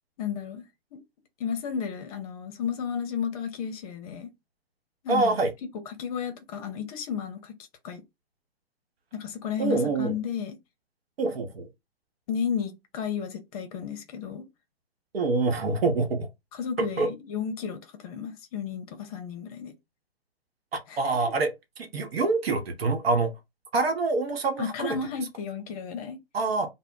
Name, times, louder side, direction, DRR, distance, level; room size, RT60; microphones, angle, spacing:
voice 1, 0.2-0.7 0.9-1.0 1.4-4.3 5.0-5.4 5.9-7.6 7.8-8.0 9.1-10.6 12.3-14.4 16.5-19.7 20.9-21.0 24.6-26.2, left 7 dB, 35° left, 0.6 m, -33 dB
voice 2, 5.1-5.5 9.6-10.2 11.2-11.7 15.1-16.3 16.8-17.1 20.7-21.5 21.8-23.3 23.7-25.0 26.3-26.7, right 3 dB, 70° right, 0.9 m, -26 dB
2.0 x 2.0 x 3.6 m
hypercardioid pair, 125°, 31 cm